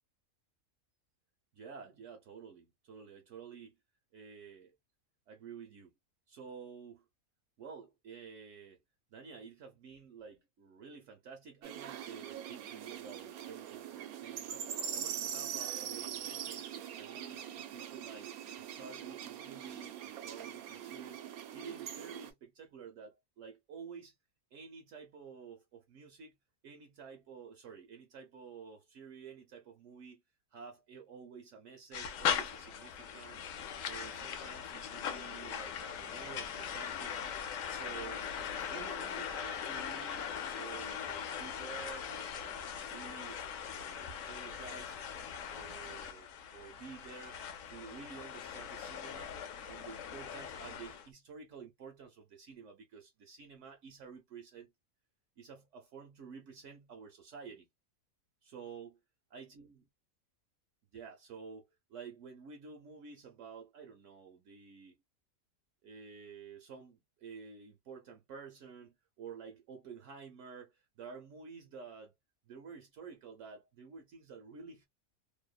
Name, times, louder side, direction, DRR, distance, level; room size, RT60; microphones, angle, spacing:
voice 1, 1.5-3.8 4.1-4.7 5.3-5.9 6.3-7.1 7.6-8.8 9.1-16.7 17.0-21.2 21.5-24.1 24.5-26.4 26.6-30.2 30.5-33.5 33.8-37.2 37.7-38.3 38.7-43.4 43.7-45.0 45.5-49.4 49.6-54.7 55.4-57.7 58.4-58.9 59.3-59.9 60.9-65.0 65.8-72.1 72.5-74.9, right 6 dB, 65° right, 0.8 m, -51 dB
sound 1, 11.6-22.3, right 9 dB, 85° right, 1.1 m, -42 dB
sound 2, 31.9-51.1, left 8 dB, 70° left, 0.9 m, -40 dB
2.7 x 2.0 x 2.2 m
omnidirectional pair, 1.5 m